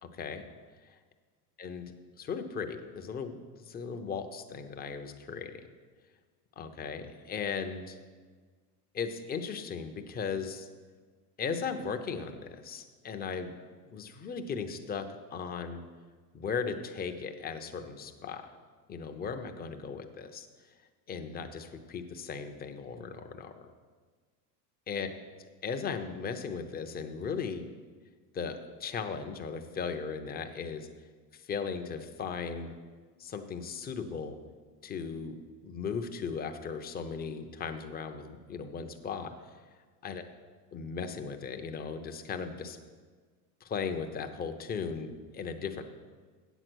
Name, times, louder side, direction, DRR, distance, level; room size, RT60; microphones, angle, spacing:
voice 1, 0.0-0.4 1.6-1.9 2.2-3.3 3.7-5.6 6.6-8.0 8.9-10.7 11.4-13.5 13.9-15.0 15.3-15.8 16.3-18.4 18.9-20.5 21.1-23.6 24.9-25.1 25.6-27.6 28.3-30.9 31.3-32.7 33.2-34.4 34.8-39.3 40.0-40.2 40.7-42.8 43.6-45.8, left 5 dB, 20° left, 6 dB, 0.6 m, -37 dB
8.3 x 8.0 x 6.1 m, 1.5 s
supercardioid pair, 135°, 50 cm